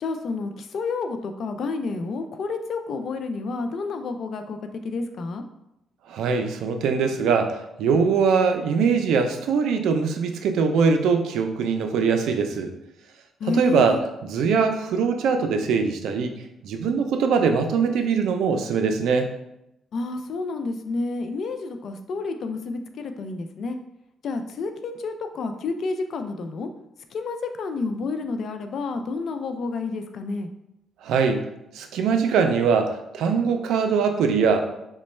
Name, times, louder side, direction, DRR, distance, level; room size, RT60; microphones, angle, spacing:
voice 1, 0.0-5.4 13.4-14.0 19.9-23.8 24.2-26.7 27.1-30.5, left 3 dB, 60° left, 7 dB, 0.3 m, -30 dB
voice 2, 6.1-7.5 7.8-12.7 13.5-16.3 16.6-19.3 31.0-31.4 31.7-34.6, right 5 dB, 80° right, 6 dB, 0.4 m, -22 dB
3.0 x 2.2 x 4.2 m, 0.85 s
cardioid pair, 90°, 0 cm